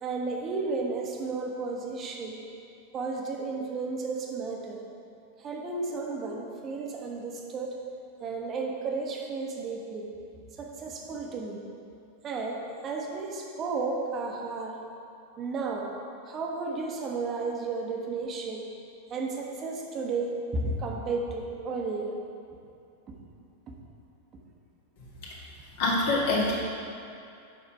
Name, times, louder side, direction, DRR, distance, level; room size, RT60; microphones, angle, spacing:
voice 1, 0.0-2.4 2.9-4.8 5.4-7.8 8.2-10.1 10.6-11.6 12.2-14.8 15.4-15.9 16.3-18.7 19.1-22.1 23.1-23.2 23.7-23.8, right 3 dB, 30° right, 0 dB, 1.1 m, -33 dB
voice 2, 25.8-26.5, left 2 dB, 50° left, -4 dB, 1.9 m, -24 dB
7.4 x 5.7 x 4.6 m, 2.6 s
figure-of-eight pair, 90°, 0 cm